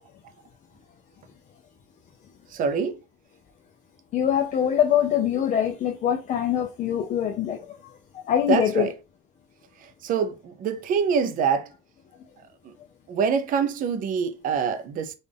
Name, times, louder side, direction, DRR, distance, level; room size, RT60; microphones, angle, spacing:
voice 1, 2.5-3.0 8.5-8.9 9.8-11.7 12.6-12.7 13.1-15.1, right 6 dB, 55° right, 0.6 m, -25 dB
voice 2, 4.1-8.9, left 9 dB, 45° left, 0.6 m, -24 dB
3.8 x 2.5 x 3.4 m
cardioid pair, 135°, 17 cm